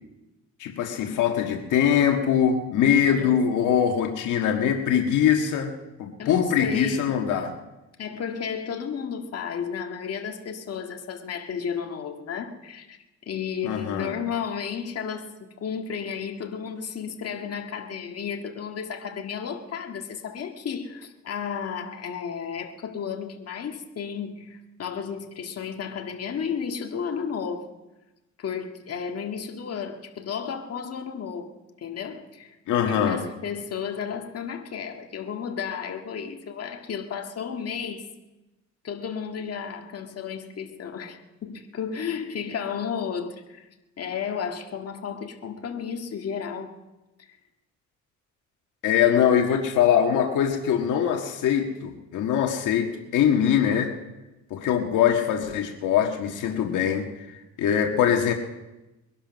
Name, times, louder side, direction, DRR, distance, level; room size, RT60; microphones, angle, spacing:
voice 1, 0.6-5.7 6.0-7.5 13.6-14.1 32.7-33.2 48.8-53.9 54.5-58.3, left 8 dB, 85° left, 3 dB, 1.6 m, -22 dB
voice 2, 6.2-7.1 8.0-13.0 13.3-27.7 28.4-32.6 32.8-38.1 38.8-43.7 44.0-46.8 47.3-47.4, left 7 dB, 55° left, 3 dB, 1.8 m, -33 dB
22.0 x 12.0 x 5.3 m, 1.0 s
cardioid pair, 90°, 30 cm